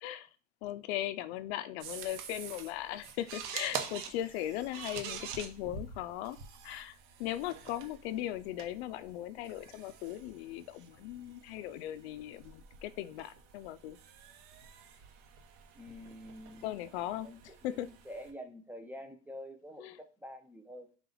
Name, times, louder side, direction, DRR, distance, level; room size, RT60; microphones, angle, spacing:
voice 1, 0.6-6.4 6.6-14.0 16.6-17.9 19.8-20.0, left 13 dB, 60° left, 14 dB, 0.5 m, -38 dB
sound 1, 1.8-18.3, right 7 dB, 60° right, 1.0 m, -46 dB
voice 2, 15.7-16.7 17.2-21.0, equal, 5° right, 5 dB, 0.4 m, -47 dB
4.0 x 3.0 x 3.9 m, 0.37 s
supercardioid pair, 120°, 37 cm